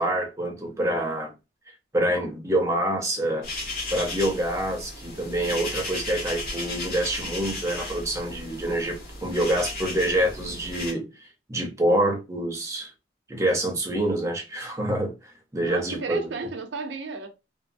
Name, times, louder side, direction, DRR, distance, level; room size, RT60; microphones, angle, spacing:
voice 1, 0.0-1.3 1.9-3.5 3.9-12.9 13.3-16.2, right 1 dB, 15° right, 0.6 m, -26 dB
sound 1, 3.4-10.9, left 2 dB, 55° left, 1.1 m, -35 dB
voice 2, 15.6-17.3, right 3 dB, 80° right, 0.5 m, -33 dB
2.9 x 2.0 x 2.5 m
head